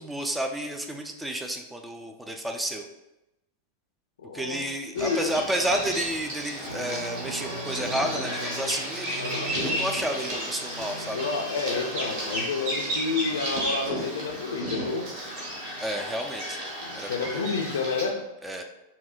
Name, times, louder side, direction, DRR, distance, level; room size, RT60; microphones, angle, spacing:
voice 1, 0.0-2.9 4.3-11.2 15.8-16.6 16.9-17.4 18.4-18.6, right 1 dB, 5° right, 4 dB, 0.3 m, -31 dB
voice 2, 4.2-4.7 4.9-5.3 9.2-9.5 11.1-15.1 16.8-18.2, left 4 dB, 65° left, 4 dB, 0.4 m, -30 dB
Bird vocalization bird call bird song, 4.9-18.1, equal, 45° right, 1.2 m, -33 dB
sound 1, 6.7-16.1, right 1 dB, 75° right, 0.5 m, -42 dB
5.5 x 2.1 x 2.3 m, 0.94 s
figure-of-eight pair, 90°, 0 cm